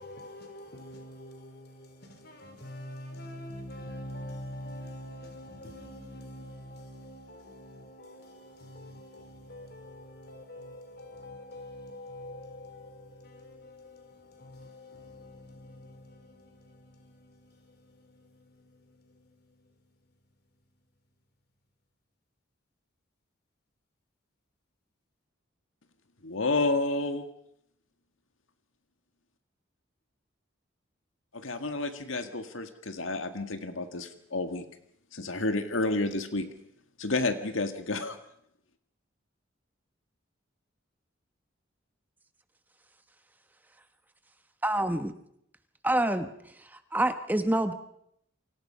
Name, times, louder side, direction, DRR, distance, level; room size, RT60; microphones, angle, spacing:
voice 1, 0.0-19.9, left 1 dB, 50° left, 4.1 m, -46 dB
voice 2, 26.2-27.2 31.3-34.7 35.1-36.5 37.0-38.2, left 2 dB, 80° left, 1.7 m, -30 dB
voice 3, 44.6-45.1 45.8-46.3 46.6-47.7, right 1 dB, 10° right, 1.0 m, -27 dB
29.0 x 24.5 x 5.7 m
head